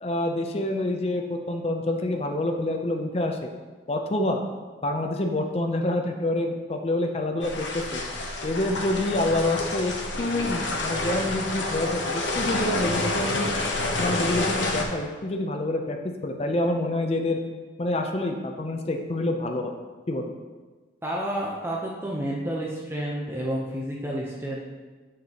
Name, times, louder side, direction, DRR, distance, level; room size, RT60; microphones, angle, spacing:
voice 1, 0.0-3.5 3.9-4.4 4.8-8.0 8.4-13.5 14.0-17.4 17.8-19.7 20.1-20.3, left 1 dB, 35° left, 3 dB, 0.5 m, -27 dB
sound 1, 7.4-14.8, left 2 dB, 90° left, 0.9 m, -28 dB
voice 2, 21.0-24.7, right 1 dB, 15° right, -3 dB, 0.6 m, -30 dB
7.9 x 6.5 x 2.9 m, 1.3 s
head